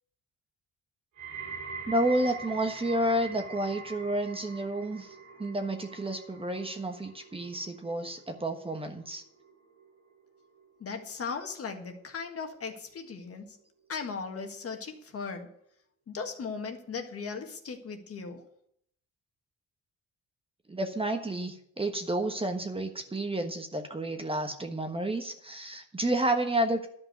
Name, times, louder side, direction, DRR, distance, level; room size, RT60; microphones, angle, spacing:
sound 1, 1.2-12.3 12.6-13.1 13.8-13.9, right 4 dB, 85° right, 3.5 m, -45 dB
voice 1, 1.9-5.1 5.4-9.2 20.7-26.9, right 1 dB, 20° right, 5 dB, 1.3 m, -30 dB
voice 2, 10.8-13.6 13.9-15.5 16.1-18.5, left 5 dB, 50° left, 4 dB, 1.7 m, -37 dB
11.5 x 5.3 x 8.0 m, 0.71 s
cardioid pair, 90°, 30 cm